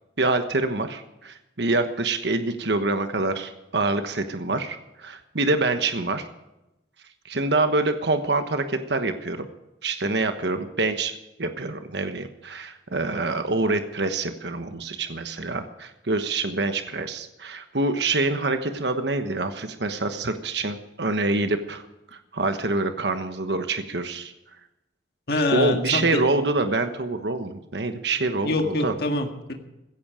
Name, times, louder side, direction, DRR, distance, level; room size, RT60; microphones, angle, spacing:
voice 1, 0.2-6.3 7.3-9.5 9.8-11.1 11.4-21.8 22.3-24.3 25.5-28.9, right 2 dB, 70° right, 8 dB, 1.3 m, -26 dB
voice 2, 25.3-26.2 28.4-29.5, left 2 dB, 60° left, 4 dB, 1.9 m, -25 dB
16.5 x 14.5 x 5.0 m, 0.94 s
head